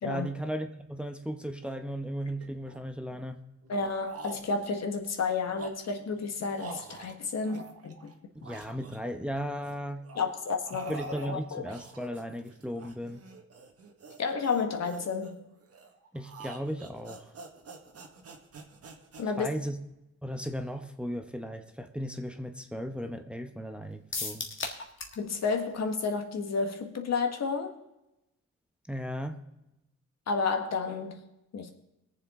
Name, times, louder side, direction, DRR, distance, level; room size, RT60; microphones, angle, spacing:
voice 1, 0.0-3.4 8.3-10.0 10.9-13.2 16.1-17.3 19.4-19.8 20.2-24.5 28.9-29.4, equal, 5° right, 6 dB, 0.9 m, -36 dB
sound 1, 1.2-1.3 1.5-1.8 2.4-3.2 3.6-4.8 5.3-8.1 8.4-9.8 10.0-19.2, right 4 dB, 55° right, 1.6 m, -47 dB
voice 2, 3.7-8.1 10.1-10.9 11.2-11.6 14.2-15.4 19.2-19.5 25.2-27.7 30.3-31.2 31.5-31.7, left 4 dB, 60° left, 5 dB, 1.6 m, -31 dB
sound 2, 24.1-25.2 25.5-25.6 25.9-26.0, left 4 dB, 45° left, 1.7 m, -35 dB
20.5 x 7.3 x 3.7 m, 0.91 s
cardioid pair, 85°, 29 cm